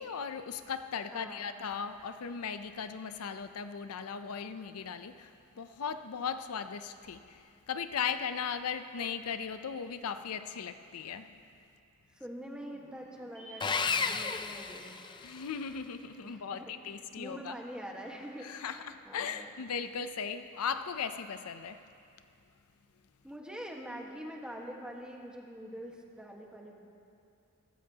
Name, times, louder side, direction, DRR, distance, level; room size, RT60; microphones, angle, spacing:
voice 1, 0.0-11.3 15.2-17.5 18.4-21.8, left 6 dB, 80° left, 10 dB, 0.5 m, -37 dB
voice 2, 1.1-1.5 12.1-14.9 16.2-19.5 23.2-26.8, equal, 5° right, -1 dB, 1.3 m, -45 dB
sound 1, 12.6-17.1 17.3-17.4, right 1 dB, 25° right, 3.3 m, -56 dB
Sawing, 13.6-15.5, left 5 dB, 20° left, 0.4 m, -32 dB
23.0 x 13.0 x 2.8 m, 2.5 s
head